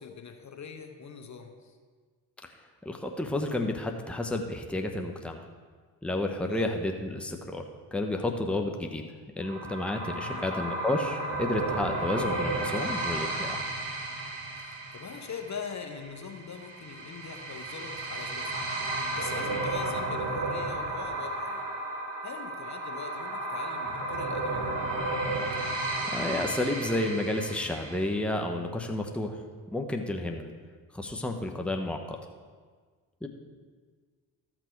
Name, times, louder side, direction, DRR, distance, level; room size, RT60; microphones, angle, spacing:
voice 1, 0.0-1.8 6.5-6.7 10.2-10.5 14.6-21.7 22.2-24.7, left 6 dB, 40° left, 5 dB, 1.0 m, -42 dB
voice 2, 2.8-5.4 6.0-7.6 7.9-9.0 9.4-13.6 26.1-29.4 29.7-30.5 30.9-32.2 33.2-33.3, left 1 dB, 5° left, 3 dB, 1.0 m, -31 dB
sound 1, 9.4-28.1, right 2 dB, 70° right, 1.9 m, -33 dB
13.0 x 6.1 x 4.6 m, 1.5 s
supercardioid pair, 60°, 44 cm